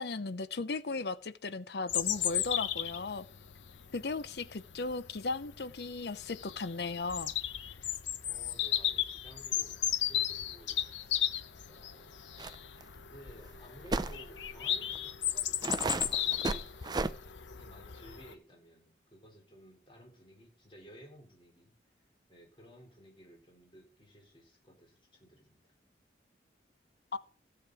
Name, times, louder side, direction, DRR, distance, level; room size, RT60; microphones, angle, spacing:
voice 1, 0.0-3.2 3.9-7.4 27.1-27.2, left 3 dB, 65° left, 0.7 m, -36 dB
Bird vocalization bird call bird song, 1.9-18.3, left 11 dB, 90° left, 0.9 m, -35 dB
voice 2, 8.2-10.9 11.7-12.4 13.0-16.7 17.5-25.6, equal, 30° left, 4.1 m, -56 dB
sound 1, 12.4-12.6 12.8-12.9 13.9-14.2 15.0-15.1 15.6-17.1, right 3 dB, 25° right, 0.5 m, -33 dB
15.5 x 7.9 x 4.9 m
head